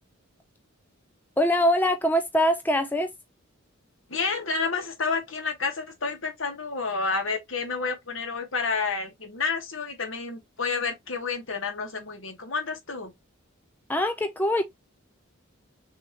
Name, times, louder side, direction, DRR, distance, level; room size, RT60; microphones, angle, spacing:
voice 1, 1.4-3.1 13.9-14.6, equal, 10° left, 0.5 m, -23 dB
voice 2, 4.1-13.1, left 4 dB, 65° left, 1.5 m, -30 dB
6.3 x 2.9 x 2.9 m
head